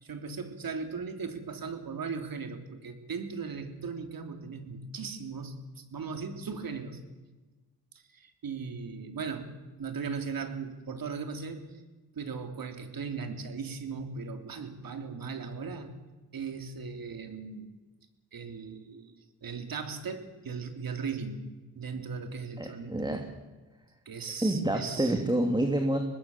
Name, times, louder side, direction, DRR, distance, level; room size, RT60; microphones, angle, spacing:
voice 1, 0.0-5.6 5.9-7.0 7.9-9.5 9.8-11.8 12.1-15.9 16.3-17.7 18.3-19.1 19.4-21.4 21.8-23.0 24.1-25.2, right 5 dB, 55° right, 7 dB, 3.5 m, -38 dB
voice 2, 22.6-23.3 24.4-26.0, right 1 dB, 10° right, 4 dB, 2.9 m, -28 dB
24.5 x 19.5 x 7.4 m, 1.2 s
cardioid pair, 75°, 40 cm